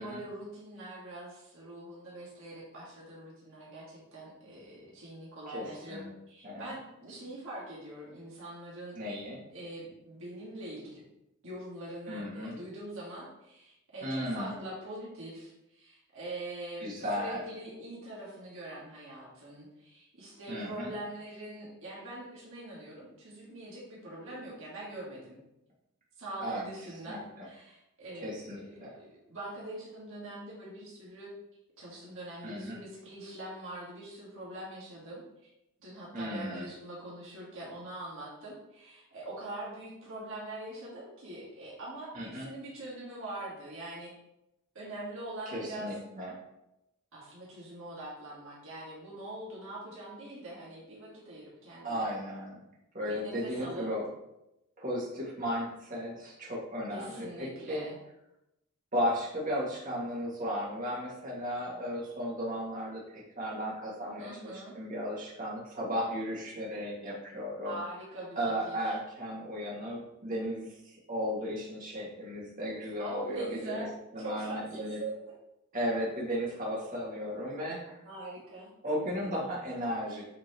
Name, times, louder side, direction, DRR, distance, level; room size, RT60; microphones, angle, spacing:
voice 1, 0.0-9.0 9.5-11.0 11.4-25.4 26.2-31.3 31.8-35.2 35.8-44.1 44.7-45.9 47.1-52.1 53.1-53.9 56.9-58.0 64.2-64.8 67.6-68.4 68.7-69.0 73.0-73.9 74.2-75.4 78.0-78.7, right 1 dB, 65° right, -6 dB, 1.9 m, -43 dB
voice 2, 5.5-6.1 6.4-6.7 9.0-9.4 12.1-12.6 14.0-14.6 16.8-17.4 20.5-20.9 26.4-26.6 27.1-27.4 28.2-28.9 32.4-32.8 36.1-36.7 42.1-42.5 45.5-46.4 51.8-52.6 52.9-54.0 54.8-57.9 58.9-64.3 64.7-67.8 68.4-73.8 74.1-75.0 75.7-78.0 78.8-80.2, equal, 40° right, -6 dB, 2.2 m, -35 dB
8.5 x 4.5 x 3.1 m, 0.88 s
head